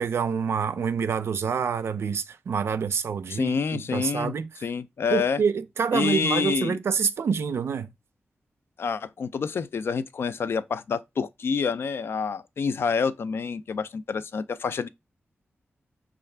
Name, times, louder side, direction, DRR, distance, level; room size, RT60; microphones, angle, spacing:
voice 1, 0.0-4.5 5.1-7.9, right 6 dB, 75° right, 0.4 m, -27 dB
voice 2, 3.3-4.3 4.6-5.4 5.9-6.8 8.8-14.9, left 5 dB, 65° left, 0.3 m, -27 dB
5.6 x 2.4 x 3.2 m
wide cardioid pair, 150°, 4 cm